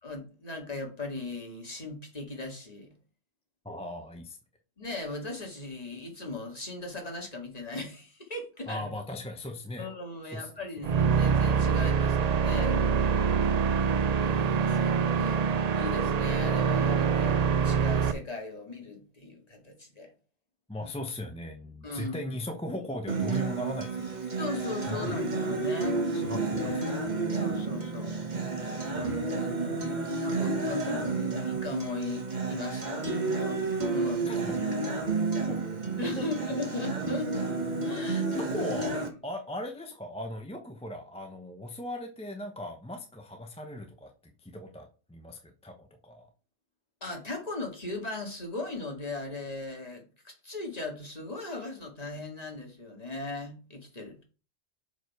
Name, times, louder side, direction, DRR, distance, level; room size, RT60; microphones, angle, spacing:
voice 1, 0.0-2.9 4.8-8.9 9.8-13.6 14.6-20.1 21.8-22.2 24.4-26.8 27.3-28.3 28.8-29.8 30.2-33.6 33.9-34.4 36.0-37.3 37.8-38.4 47.0-54.2, left 2 dB, 30° left, 2.0 m, -38 dB
voice 2, 3.6-4.4 8.7-9.9 10.3-10.5 14.1-14.9 20.7-24.2 24.9-25.1 26.1-26.4 26.6-27.0 29.0-29.3 34.3-34.6 35.5-35.6 36.2-36.3 38.4-44.1 44.4-46.3, left 1 dB, 5° left, 0.7 m, -38 dB
sound 1, 10.8-18.1, right 6 dB, 60° right, 0.4 m, -25 dB
Acoustic guitar, 23.1-39.1, right 3 dB, 35° right, 1.3 m, -31 dB
6.4 x 5.1 x 4.6 m
omnidirectional pair, 1.3 m